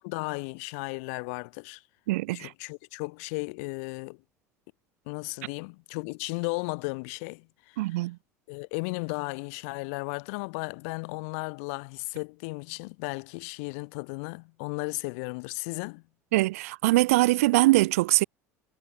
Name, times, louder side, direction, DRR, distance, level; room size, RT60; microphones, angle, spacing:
voice 1, 0.0-1.8 2.3-4.2 5.1-8.0 8.5-16.0, left 32 dB, 60° left, 5.9 m, -35 dB
voice 2, 2.1-2.5 7.8-8.2 16.3-18.2, right 19 dB, 65° right, 1.2 m, -22 dB
figure-of-eight pair, 70°, 8 cm